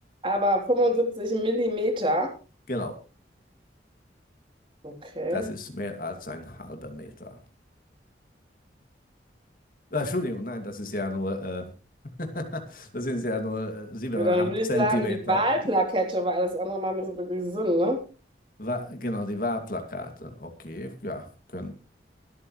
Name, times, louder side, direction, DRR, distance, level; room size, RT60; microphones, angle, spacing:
voice 1, 0.2-2.3 4.8-5.5 14.1-18.0, equal, 30° right, 2 dB, 3.3 m, -25 dB
voice 2, 5.3-7.4 9.9-11.7 12.2-15.4 18.6-21.7, left 1 dB, 50° left, 5 dB, 2.5 m, -32 dB
25.5 x 8.6 x 3.2 m, 0.34 s
head